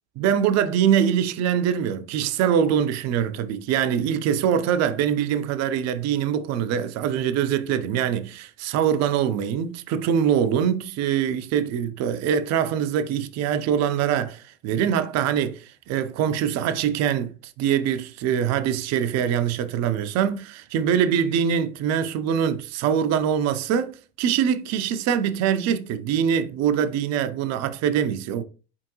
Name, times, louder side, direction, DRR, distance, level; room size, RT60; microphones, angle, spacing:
voice 1, 0.2-17.3 17.6-28.4, right 8 dB, 50° right, 0.6 m, -23 dB
4.4 x 3.5 x 3.0 m
hypercardioid pair, 70°, 34 cm